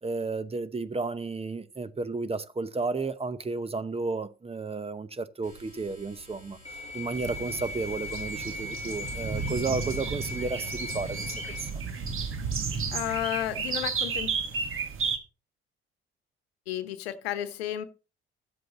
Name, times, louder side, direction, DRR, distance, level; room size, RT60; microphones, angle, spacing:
voice 1, 0.0-6.6 6.9-11.8, right 3 dB, 20° right, 0.8 m, -33 dB
sound 1, 5.4-13.8, equal, 90° right, 5.1 m, -53 dB
sound 2, 6.6-11.7, left 2 dB, 20° left, 1.1 m, -38 dB
sound 3, 7.1-15.2, right 5 dB, 45° right, 1.4 m, -33 dB
voice 2, 12.9-14.3 16.7-17.9, left 12 dB, 80° left, 1.0 m, -32 dB
11.5 x 7.8 x 4.0 m
hypercardioid pair, 55°, 30 cm